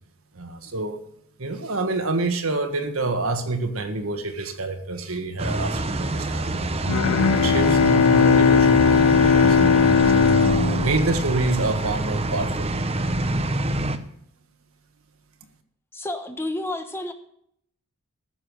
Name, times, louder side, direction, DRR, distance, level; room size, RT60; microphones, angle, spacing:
voice 1, 0.3-1.0 1.4-9.7 10.1-13.1, right 2 dB, 70° right, 6 dB, 1.6 m, -28 dB
sound 1, 5.4-14.0, right 2 dB, 25° right, 0.8 m, -26 dB
Bowed string instrument, 6.9-11.8, left 6 dB, 80° left, 0.4 m, -18 dB
voice 2, 15.9-17.1, left 1 dB, 10° left, 6 dB, 1.0 m, -30 dB
14.5 x 6.8 x 6.5 m, 0.70 s
head